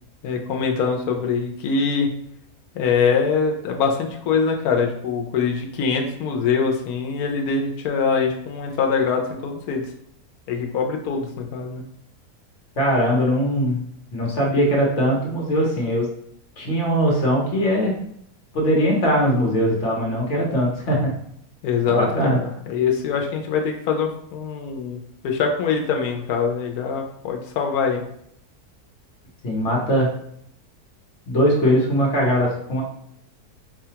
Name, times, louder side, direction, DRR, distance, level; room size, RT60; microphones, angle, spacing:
voice 1, 0.2-2.2 2.7-9.8 10.5-11.8 21.6-25.0 25.2-28.0, left 5 dB, 75° left, 2 dB, 1.1 m, -23 dB
voice 2, 12.8-13.8 14.1-16.1 16.6-17.9 18.5-21.1 21.9-22.4 29.4-30.1 31.3-32.8, equal, 50° left, -3 dB, 1.2 m, -20 dB
4.8 x 2.3 x 2.8 m, 0.70 s
omnidirectional pair, 1.7 m